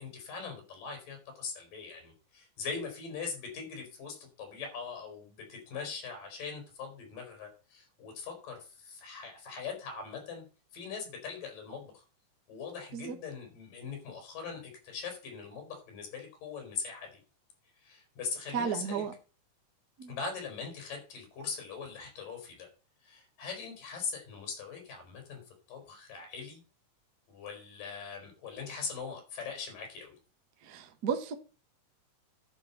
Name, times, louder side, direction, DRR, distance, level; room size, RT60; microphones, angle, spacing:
voice 1, 0.0-10.4 10.7-12.0 12.5-17.2 17.8-19.0 20.1-22.7 23.0-25.4 25.7-26.6 27.3-30.2, left 5 dB, 70° left, 5.5 m, -41 dB
voice 2, 18.5-19.1 20.0-20.2 30.6-31.3, right 7 dB, 75° right, 0.8 m, -33 dB
11.5 x 5.3 x 6.8 m
omnidirectional pair, 4.0 m